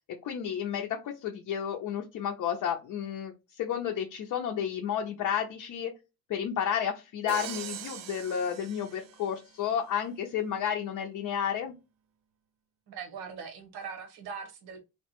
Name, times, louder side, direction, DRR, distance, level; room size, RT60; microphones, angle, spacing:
voice 1, 0.2-5.9 6.3-11.7, left 8 dB, 55° left, 0.5 m, -31 dB
Crash cymbal, 7.3-9.5, right 10 dB, 50° right, 0.5 m, -42 dB
voice 2, 12.9-14.8, right 6 dB, 80° right, 0.9 m, -41 dB
2.9 x 2.1 x 2.9 m
cardioid pair, 85°, 36 cm